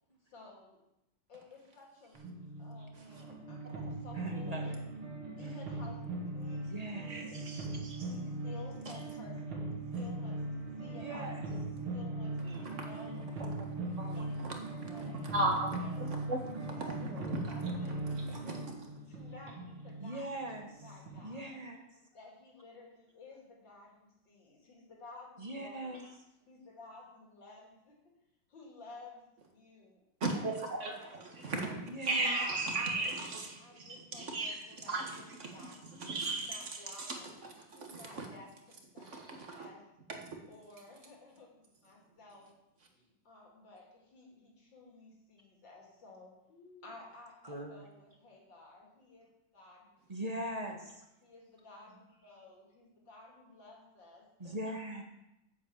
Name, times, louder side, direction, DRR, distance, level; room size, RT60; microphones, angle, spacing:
voice 1, 0.3-0.8 1.3-2.2 2.6-4.8 5.4-7.5 8.1-13.6 14.1-15.3 15.8-16.4 16.7-18.8 19.1-20.4 20.8-21.6 22.1-26.0 26.5-27.9 28.5-30.0 30.3-30.5 30.9-31.7 32.0-32.2 32.9-37.3 37.7-39.8 40.5-42.5 42.9-49.3 49.5-50.3 51.2-54.6, left 2 dB, 60° left, -2 dB, 3.5 m, -54 dB
sound 1, 2.1-21.3, right 2 dB, 75° right, 2.9 m, -40 dB
voice 2, 4.2-4.8 5.4-5.5 6.6-7.1 10.9-11.4 20.0-20.7 21.2-21.8 25.4-26.0 31.9-32.4 47.4-47.8 50.1-51.0 54.4-55.0, right 1 dB, 20° right, 2 dB, 1.3 m, -40 dB
voice 3, 7.0-8.1 12.4-12.9 13.5-18.0 18.2-18.6 30.2-31.8 32.0-38.3 39.0-39.7 40.1-40.4, right 2 dB, 35° right, 2 dB, 1.9 m, -37 dB
8.6 x 8.1 x 7.4 m, 0.89 s
omnidirectional pair, 2.3 m